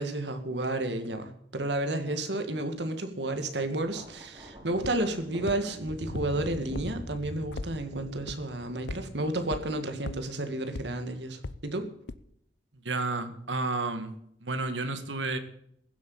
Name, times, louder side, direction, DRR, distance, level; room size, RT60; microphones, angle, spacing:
voice 1, 0.0-11.9, right 1 dB, 65° right, 7 dB, 2.0 m, -31 dB
Thunder, 3.8-10.1 11.1-11.4, equal, 30° right, 4.2 m, -44 dB
sound 1, 4.8-4.9 5.5-5.6 6.2-6.3 6.8-6.9 7.2-7.7 8.3-8.4 8.9-9.0 9.5-9.6 10.1-10.2 10.8-10.9 11.4-11.5 12.1-12.2, left 2 dB, 75° left, 0.8 m, -35 dB
voice 2, 12.8-14.1 14.4-15.4, right 3 dB, 90° right, 9 dB, 1.9 m, -31 dB
16.0 x 8.0 x 8.6 m, 0.71 s
head